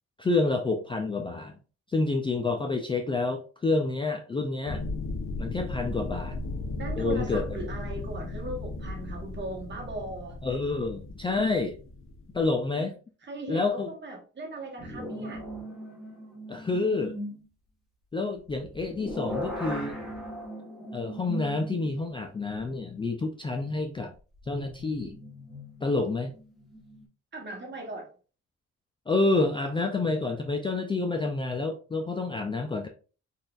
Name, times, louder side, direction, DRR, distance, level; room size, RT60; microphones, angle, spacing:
voice 1, 0.2-1.6 1.9-4.9 5.4-6.4 7.0-7.4 10.4-11.8 12.3-13.0 13.5-13.9 16.5-17.2 18.1-20.0 20.9-24.1 24.5-25.2 25.8-26.3 29.1-32.9, left 3 dB, 15° left, 0.3 m, -28 dB
sound 1, 4.7-12.5, left 2 dB, 45° left, 0.7 m, -36 dB
voice 2, 6.7-10.4 13.2-15.4 27.3-28.1, right 2 dB, 35° right, 1.1 m, -38 dB
sound 2, 14.8-17.4 18.5-22.1 22.6-22.7 24.5-27.1, equal, ahead, 1.1 m, -38 dB
3.9 x 2.5 x 2.4 m
cardioid pair, 90°, 30 cm